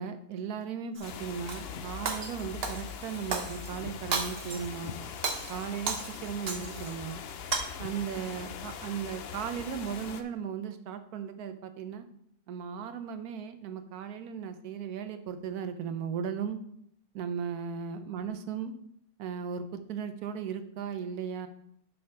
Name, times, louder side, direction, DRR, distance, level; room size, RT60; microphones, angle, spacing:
voice 1, 0.0-4.9 5.5-6.0 6.2-7.2 7.8-12.1 12.5-16.6 17.1-18.7 19.2-21.5, right 7 dB, 80° right, 9 dB, 1.3 m, -36 dB
sound 1, 1.0-10.2, left 7 dB, 60° left, 0.7 m, -41 dB
Shatter, 1.0-1.6 2.1-3.7 4.1-4.8 5.1-6.9 7.3-7.6, right 4 dB, 45° right, 1.0 m, -34 dB
6.8 x 5.2 x 5.6 m, 0.71 s
omnidirectional pair, 1.6 m